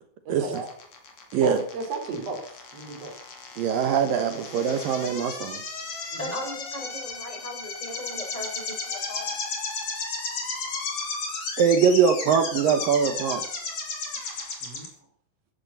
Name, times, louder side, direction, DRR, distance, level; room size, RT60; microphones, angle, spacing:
voice 1, 0.3-0.7 1.4-2.4 2.7-3.1 6.1-6.4 14.6-14.9, right 4 dB, 45° right, 4 dB, 3.8 m, -33 dB
sound 1, 0.5-14.9, left 4 dB, 45° left, 3.8 m, -34 dB
voice 2, 3.6-5.6 11.6-13.4, right 7 dB, 70° right, 8 dB, 2.7 m, -22 dB
voice 3, 6.2-9.3, left 1 dB, 10° left, 2 dB, 4.5 m, -37 dB
14.5 x 11.0 x 7.0 m, 0.64 s
omnidirectional pair, 4.4 m